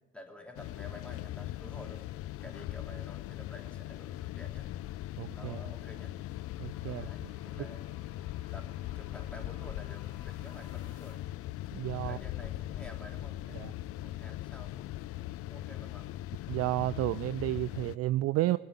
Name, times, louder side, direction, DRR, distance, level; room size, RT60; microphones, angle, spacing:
voice 1, 0.1-2.0 2.4-4.7 5.3-6.1 6.8-8.0 8.5-8.7 8.9-11.2 12.0-14.9 15.4-16.0, left 1 dB, 5° left, 1 dB, 3.1 m, -50 dB
sound 1, 0.6-18.0, left 15 dB, 45° left, 0.4 m, -40 dB
voice 2, 5.2-5.6 6.6-7.3 11.7-12.2 13.6-13.7 16.5-18.6, right 16 dB, 50° right, 16 dB, 0.4 m, -31 dB
sound 2, 6.3-11.5, left 5 dB, 60° left, 3.8 m, -60 dB
20.0 x 8.5 x 8.3 m, 1.2 s
hypercardioid pair, 50°, 33 cm